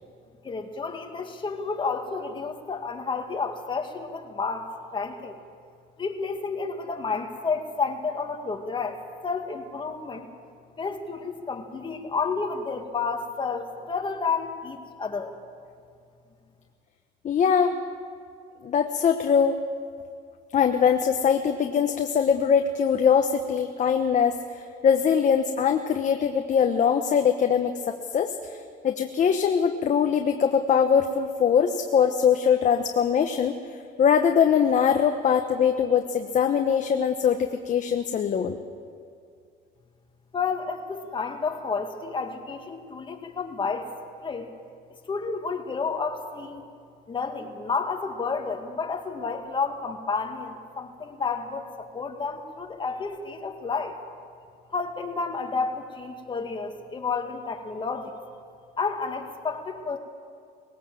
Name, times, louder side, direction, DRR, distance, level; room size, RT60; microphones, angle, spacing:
voice 1, 0.4-5.4 6.0-10.3 10.8-15.3 40.3-43.9 44.2-44.5 45.1-46.7 47.1-54.0 54.7-58.2 58.8-60.0, left 4 dB, 30° left, 4 dB, 2.1 m, -31 dB
voice 2, 17.2-17.8 18.6-19.6 20.5-28.6 28.8-33.5 34.0-38.6, left 7 dB, 45° left, 5 dB, 1.1 m, -22 dB
19.5 x 17.5 x 7.7 m, 2.3 s
cardioid pair, 110°, 17 cm